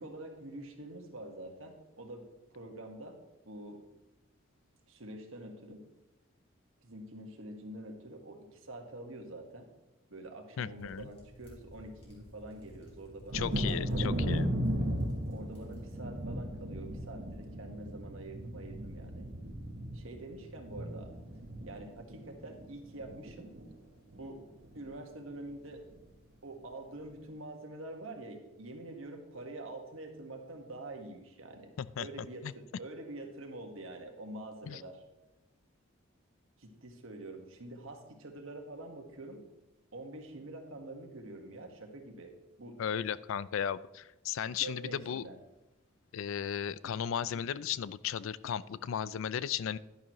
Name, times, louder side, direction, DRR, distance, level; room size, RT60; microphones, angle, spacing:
voice 1, 0.0-3.2 3.4-3.8 4.9-5.8 6.8-9.7 10.1-14.5 15.3-19.3 19.9-21.1 21.7-23.5 24.1-24.4 24.7-25.8 26.4-31.7 32.0-35.0 36.6-39.4 39.9-42.3 42.6-42.8 44.6-45.4 46.8-47.0, right 2 dB, 75° right, 4 dB, 1.5 m, -46 dB
voice 2, 10.6-11.1 13.3-14.5 31.8-32.1 32.4-32.5 34.7-34.8 42.8-45.2 46.1-49.8, left 8 dB, 70° left, 18 dB, 0.4 m, -35 dB
sound 1, 10.7-16.0, equal, 30° left, 3.5 m, -54 dB
Thunder, 13.3-22.7 23.0-23.7 24.1-24.2 24.6-24.8, equal, 50° right, 1.0 m, -36 dB
11.0 x 10.5 x 3.0 m, 1.0 s
head